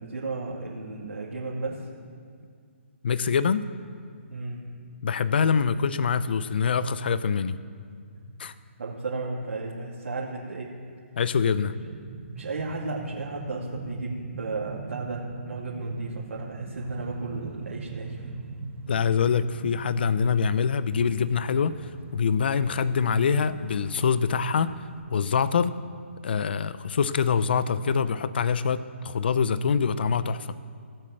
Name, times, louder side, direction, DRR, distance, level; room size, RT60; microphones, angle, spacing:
voice 1, 0.0-1.9 4.3-4.6 8.8-10.7 11.6-11.7 12.4-18.3, right 3 dB, 85° right, -5 dB, 2.6 m, -34 dB
voice 2, 3.0-3.6 5.0-7.5 8.4-8.5 11.2-11.8 18.9-24.7 25.1-25.7 26.2-30.5, left 6 dB, 50° left, 14 dB, 0.5 m, -24 dB
sound 1, 11.7-20.0, right 4 dB, 30° right, 0.9 m, -40 dB
sound 2, 16.8-25.0, right 3 dB, 65° right, 1.5 m, -48 dB
16.5 x 7.6 x 7.7 m, 2.2 s
hypercardioid pair, 170°, 7 cm